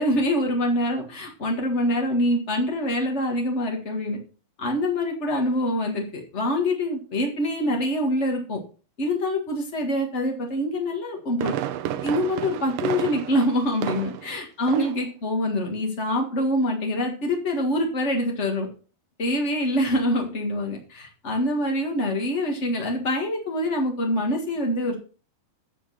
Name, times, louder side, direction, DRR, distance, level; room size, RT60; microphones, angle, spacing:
voice 1, 0.0-4.2 4.6-8.6 9.0-11.6 12.0-18.7 19.2-24.9, left 1 dB, 55° left, 1 dB, 0.7 m, -25 dB
Fireworks, 10.9-14.4 14.7-15.1 15.4-15.5, right 12 dB, 80° right, 2.3 m, -31 dB
9.9 x 6.4 x 5.6 m, 0.37 s
omnidirectional pair, 4.3 m